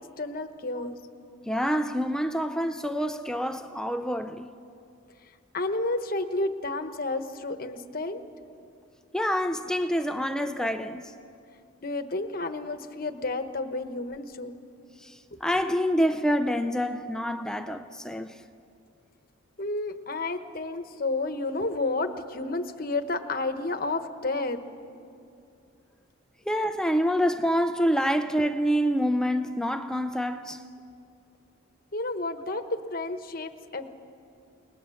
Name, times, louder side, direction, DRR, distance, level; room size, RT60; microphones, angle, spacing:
voice 1, 0.2-1.0 5.5-8.2 11.8-14.6 19.6-24.6 31.9-33.9, left 2 dB, 45° left, 1.1 m, -31 dB
voice 2, 1.5-4.5 9.1-11.1 15.0-18.4 26.5-30.6, equal, 5° left, 0.5 m, -27 dB
29.5 x 19.5 x 7.1 m
head